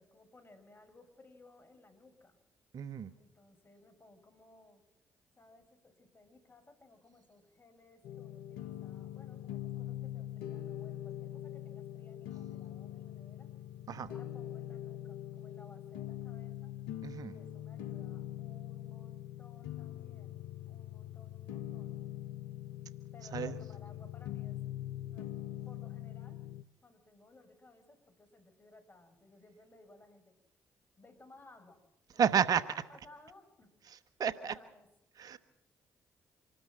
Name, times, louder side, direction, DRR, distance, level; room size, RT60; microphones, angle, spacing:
voice 1, 0.0-2.4 3.2-4.8 5.4-13.5 14.0-16.8 17.3-22.1 23.1-24.6 25.0-26.5 26.8-30.3 31.0-31.8 32.1-32.5 32.9-33.7 34.2-34.9, left 2 dB, 30° left, 6 dB, 6.5 m, -60 dB
voice 2, 2.7-3.1 13.9-14.1 17.0-17.3 23.3-23.5 32.2-32.6 33.9-34.5 35.2-35.4, right 7 dB, 60° right, 12 dB, 1.2 m, -31 dB
sound 1, 8.0-26.6, left 12 dB, 80° left, 0.8 m, -43 dB
26.5 x 13.0 x 7.6 m, 0.88 s
hypercardioid pair, 40°, 7 cm